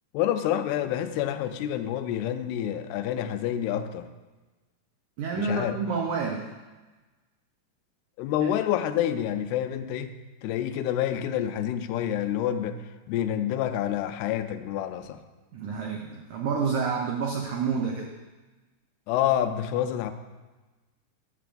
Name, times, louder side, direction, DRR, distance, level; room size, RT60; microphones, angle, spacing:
voice 1, 0.1-4.1 5.3-5.8 8.2-12.8 13.1-15.2 19.1-20.1, left 10 dB, 85° left, 8 dB, 2.6 m, -28 dB
voice 2, 5.2-6.5 8.4-8.5 15.5-18.1, right 5 dB, 80° right, 0 dB, 1.7 m, -29 dB
14.0 x 10.0 x 2.5 m, 1.2 s
omnidirectional pair, 4.6 m